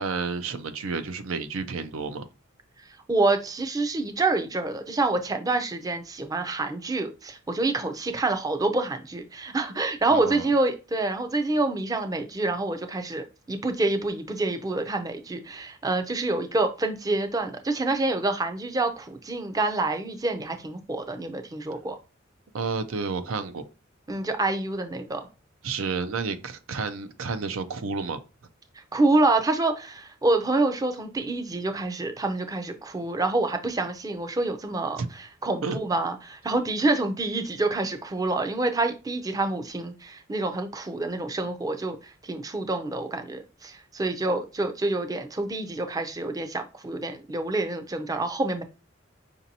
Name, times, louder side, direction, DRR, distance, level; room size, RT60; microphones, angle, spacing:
voice 1, 0.0-2.3 10.1-10.5 22.5-23.7 25.6-28.2 35.0-35.1 35.6-35.8, right 4 dB, 90° right, 0.5 m, -30 dB
voice 2, 3.1-22.0 24.1-25.3 28.8-48.6, right 2 dB, 20° right, 0.4 m, -27 dB
5.1 x 2.6 x 2.7 m
head